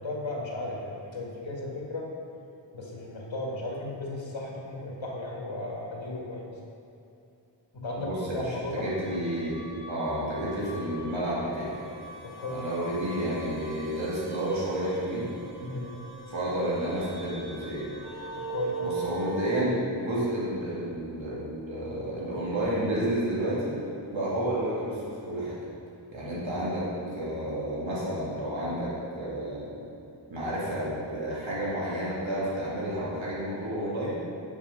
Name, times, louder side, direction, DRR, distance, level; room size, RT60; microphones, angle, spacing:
voice 1, 0.0-2.1 2.7-6.5 7.7-8.9 12.2-12.6 15.6-16.0 18.4-19.0, left 2 dB, 90° left, -2 dB, 1.9 m, -35 dB
voice 2, 8.0-9.6 9.9-11.7 12.5-15.3 16.3-17.9 18.8-23.8 24.1-25.6 26.1-29.9 30.3-34.2, right 1 dB, 90° right, -8 dB, 2.2 m, -31 dB
sound 1, 8.8-19.6, right 3 dB, 60° right, 1.2 m, -41 dB
8.3 x 7.3 x 5.4 m, 2.7 s
wide cardioid pair, 65°, 45 cm